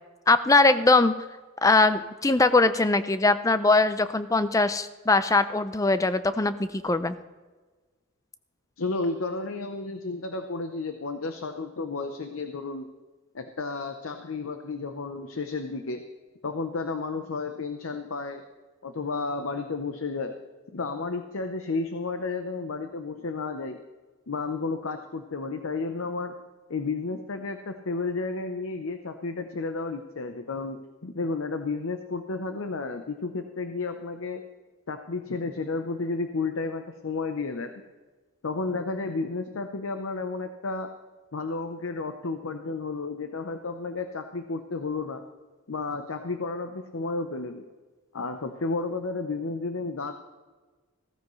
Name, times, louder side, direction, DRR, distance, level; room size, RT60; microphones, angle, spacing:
voice 1, 0.3-1.1 1.6-7.2, left 3 dB, 15° left, 12 dB, 0.4 m, -21 dB
voice 2, 8.8-12.9 13.3-16.0 16.4-18.4 18.8-20.4 20.7-23.8 24.3-26.4 26.7-34.4 34.9-37.7 38.4-40.9 41.3-45.2 45.7-47.7 48.1-50.1, left 3 dB, 80° left, 7 dB, 0.8 m, -32 dB
15.5 x 14.0 x 3.2 m, 1.3 s
head